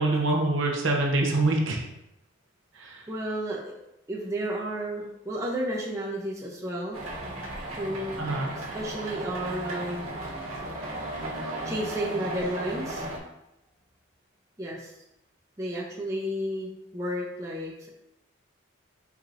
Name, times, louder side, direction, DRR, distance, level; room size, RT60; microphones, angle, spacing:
voice 1, 0.0-1.8 2.8-3.0 8.2-8.5, right 2 dB, 60° right, 0 dB, 0.8 m, -25 dB
voice 2, 3.1-3.7 4.1-7.0 7.8-10.1 11.6-13.0 14.6-14.9 15.6-17.9, right 1 dB, 15° right, -4 dB, 0.6 m, -32 dB
sound 1, 6.9-13.2, right 1 dB, 85° right, 1.4 m, -35 dB
4.8 x 4.3 x 2.5 m, 0.85 s
head